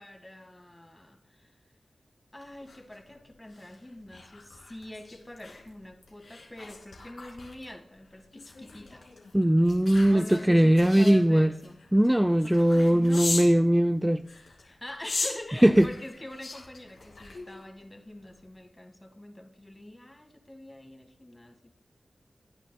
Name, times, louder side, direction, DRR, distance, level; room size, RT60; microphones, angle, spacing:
voice 1, 0.0-1.5 2.3-9.1 10.1-11.8 12.4-12.6 12.9-13.3 14.6-21.7, left 1 dB, 20° left, 1.7 m, -44 dB
sound 1, 2.4-13.6 14.2-17.8 18.2-18.5, left 3 dB, 75° left, 2.5 m, -40 dB
voice 2, 9.3-11.5 11.9-14.2 15.6-15.9, right 1 dB, 10° right, 0.4 m, -20 dB
18.0 x 9.0 x 2.2 m
cardioid pair, 40°, 0 cm